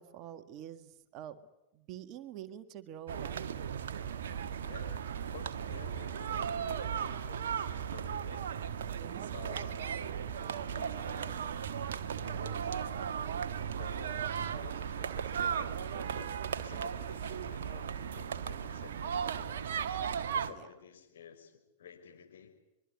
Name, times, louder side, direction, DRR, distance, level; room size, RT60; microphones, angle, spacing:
voice 1, 0.0-1.4 1.7-3.5 8.9-9.4 20.5-20.7, right 11 dB, 40° right, 10 dB, 1.8 m, -47 dB
sound 1, 3.1-20.5, right 8 dB, 60° right, 1.2 m, -36 dB
voice 2, 4.6-8.5 9.3-10.0 10.7-11.6 12.2-12.7 13.8-19.9 20.3-22.5, left 7 dB, 60° left, 5 dB, 5.6 m, -52 dB
24.5 x 23.0 x 9.9 m, 0.89 s
figure-of-eight pair, 90°, 0 cm